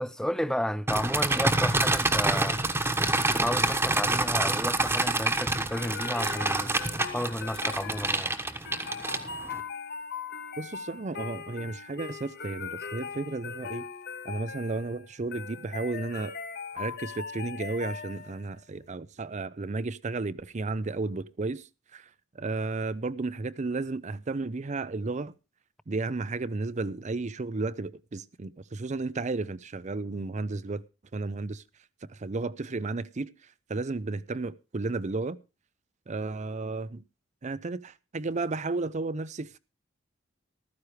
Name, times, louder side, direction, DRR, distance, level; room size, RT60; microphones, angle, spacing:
voice 1, 0.0-2.6 3.3-6.9 7.1-8.4, equal, 5° left, 0.6 m, -32 dB
sound 1, 0.9-9.6, right 2 dB, 10° right, 1.2 m, -27 dB
sound 2, 5.7-18.5, left 5 dB, 55° left, 1.4 m, -40 dB
voice 2, 10.6-13.9 14.2-16.3 16.7-22.1 22.3-25.3 25.9-30.8 31.1-31.6 32.1-33.3 33.7-35.4 36.1-37.0 37.4-39.6, right 3 dB, 35° right, 0.5 m, -33 dB
14.5 x 13.0 x 3.2 m
head